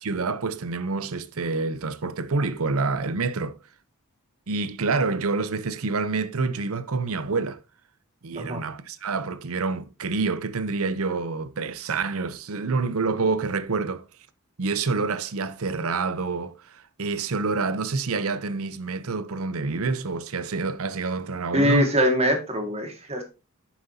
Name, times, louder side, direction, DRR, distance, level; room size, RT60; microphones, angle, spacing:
voice 1, 0.0-3.6 4.5-7.6 8.2-14.0 14.6-21.9, right 4 dB, 75° right, 0.7 m, -27 dB
voice 2, 21.5-23.2, equal, 30° right, 2.0 m, -23 dB
9.0 x 7.3 x 2.8 m
head